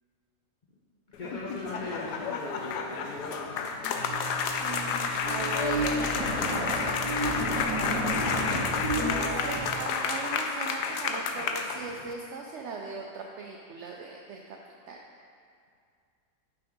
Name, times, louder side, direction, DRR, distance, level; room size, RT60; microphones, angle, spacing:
sound 1, 1.1-12.1, left 5 dB, 90° left, 1.2 m, -31 dB
voice 1, 1.2-3.8, left 2 dB, 45° left, -5 dB, 0.6 m, -39 dB
sound 2, 3.9-9.7, right 1 dB, 25° left, 2.0 m, -32 dB
voice 2, 4.6-7.0 9.2-14.4 14.9-15.0, right 4 dB, 70° right, 0 dB, 0.7 m, -39 dB
6.2 x 5.9 x 5.1 m, 2.3 s
omnidirectional pair, 1.7 m